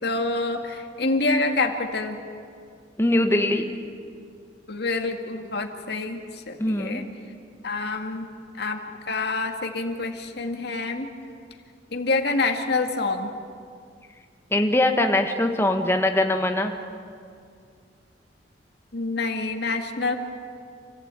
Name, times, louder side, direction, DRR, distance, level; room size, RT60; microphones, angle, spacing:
voice 1, 0.0-2.2 4.7-7.0 7.6-8.3 8.6-8.8 9.1-11.1 11.9-13.3 18.9-20.1, left 3 dB, 60° left, 5 dB, 2.1 m, -27 dB
voice 2, 3.0-3.7 6.6-7.0 14.5-16.7, left 1 dB, 15° left, 4 dB, 1.6 m, -22 dB
28.0 x 15.5 x 9.0 m, 2.3 s
head